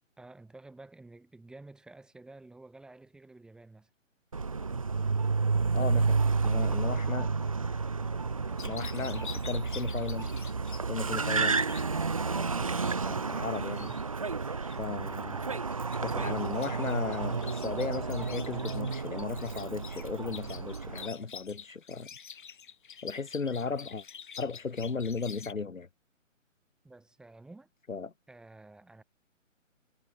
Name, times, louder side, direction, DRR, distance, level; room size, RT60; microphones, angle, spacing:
voice 1, 0.2-3.9 6.5-7.0 26.8-27.7 28.3-29.0, right 2 dB, ahead, 1.7 m, -51 dB
Car, 4.3-21.1, right 4 dB, 25° right, 0.6 m, -31 dB
voice 2, 5.7-7.3 8.6-10.3 10.9-11.6 12.3-14.0 14.8-15.5 16.0-22.1 23.0-24.0 24.4-25.9 27.9-28.1, left 4 dB, 75° left, 1.1 m, -36 dB
sound 1, 8.6-12.1 12.4-12.8 13.5-14.0 14.4-15.2 15.5-25.5, left 7 dB, 40° left, 1.2 m, -48 dB
figure-of-eight pair, 140°, 39 cm